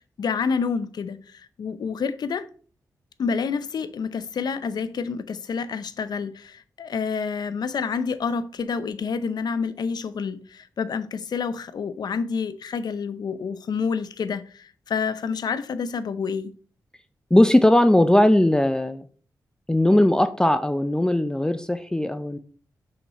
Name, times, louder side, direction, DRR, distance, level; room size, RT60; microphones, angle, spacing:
voice 1, 0.2-2.4 3.2-16.5, left 5 dB, 75° left, 0.6 m, -28 dB
voice 2, 17.3-19.1 19.7-22.4, left 1 dB, 10° left, 0.5 m, -19 dB
6.2 x 5.8 x 4.2 m
cardioid pair, 75°, 7 cm